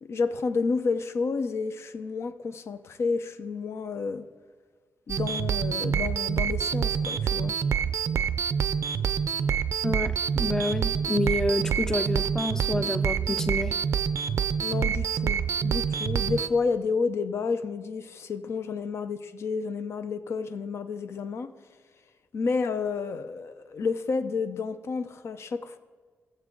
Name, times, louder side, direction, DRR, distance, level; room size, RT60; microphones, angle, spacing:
voice 1, 0.0-4.3 5.1-7.5 14.6-21.5 22.3-25.8, left 4 dB, 60° left, 0.6 m, -30 dB
sound 1, 5.1-16.5, right 7 dB, 65° right, 0.4 m, -27 dB
voice 2, 9.8-13.8, left 1 dB, 10° left, 0.4 m, -28 dB
20.5 x 7.5 x 3.8 m
wide cardioid pair, 145°, 5 cm